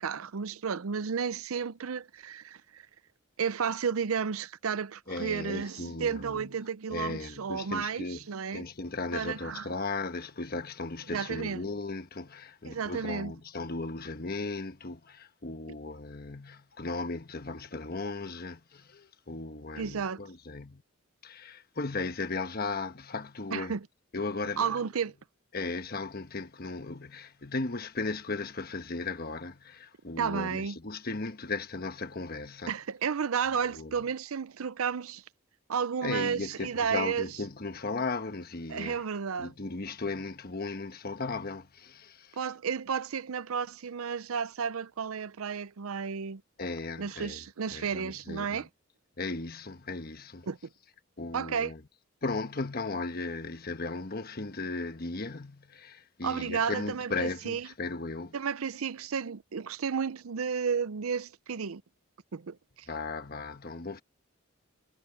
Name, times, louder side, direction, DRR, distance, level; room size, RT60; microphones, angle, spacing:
voice 1, 0.0-2.8 3.4-8.7 9.1-9.7 11.1-11.6 12.6-13.3 19.8-20.2 23.5-23.9 24.6-25.1 30.2-30.8 32.7-35.2 35.7-37.3 38.7-39.5 42.4-46.4 47.0-48.7 50.5-50.6 51.3-51.7 56.2-57.7 58.3-61.8 62.3-62.9, right 6 dB, 90° right, 0.6 m, -32 dB
voice 2, 5.1-6.5 6.9-8.2 8.5-20.8 21.2-23.7 24.1-24.8 25.5-32.7 33.7-33.9 36.0-39.0 39.4-42.4 46.6-47.4 47.7-48.6 49.2-50.5 51.2-51.8 52.2-58.3 62.9-64.0, left 3 dB, 45° left, 1.2 m, -36 dB
head